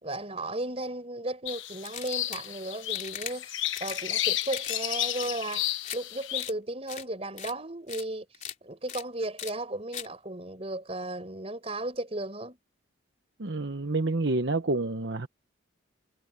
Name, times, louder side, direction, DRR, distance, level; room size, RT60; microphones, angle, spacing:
voice 1, 0.0-8.3 8.6-12.6, right 1 dB, 30° right, 5.5 m, -35 dB
sound 1, 1.5-6.5, left 13 dB, 75° left, 1.0 m, -32 dB
sound 2, 1.8-2.5 2.9-3.3 3.7-4.0 4.4-4.8 5.1-6.0 6.3-6.5 6.9-7.0 7.4-7.5 7.9-8.0 8.3-8.5 8.9-9.0 9.4-9.5 9.9-10.1, left 9 dB, 40° left, 3.8 m, -39 dB
voice 2, 13.4-15.3, right 2 dB, 60° right, 1.0 m, -28 dB
head